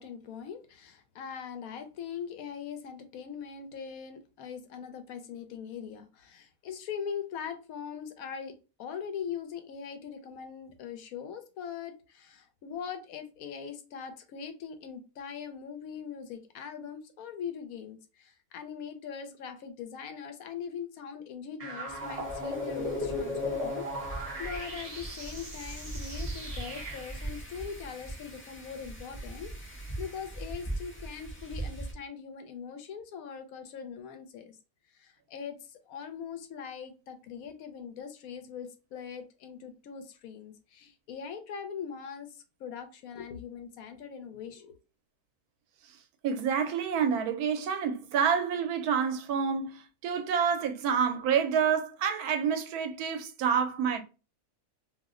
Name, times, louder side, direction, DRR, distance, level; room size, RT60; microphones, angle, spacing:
voice 1, 0.0-34.6 34.9-44.8, left 7 dB, 75° left, 1.0 m, -41 dB
sound 1, 21.6-27.3, left 1 dB, 35° right, 0.6 m, -37 dB
Wind, 21.9-31.9, right 1 dB, 20° left, 0.3 m, -41 dB
voice 2, 46.2-54.0, right 7 dB, 85° right, 1.1 m, -28 dB
2.7 x 2.0 x 3.6 m
omnidirectional pair, 1.6 m